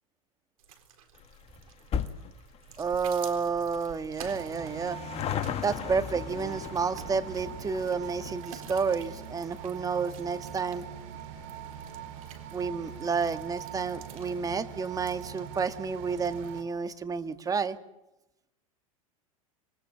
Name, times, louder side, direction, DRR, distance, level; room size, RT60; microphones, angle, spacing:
sound 1, 0.6-16.6, right 8 dB, 75° right, 4.0 m, -52 dB
sound 2, 1.1-13.9 14.2-14.3 15.2-15.3 15.5-15.6 15.8-15.9, left 8 dB, 35° left, 1.7 m, -40 dB
voice 1, 2.8-5.0 5.6-10.9 12.5-17.8, right 5 dB, 20° right, 9 dB, 1.7 m, -30 dB
sound 3, 4.2-16.6, right 9 dB, 55° right, 3.8 m, -43 dB
26.5 x 23.5 x 7.4 m, 0.93 s
hypercardioid pair, 100°, 18 cm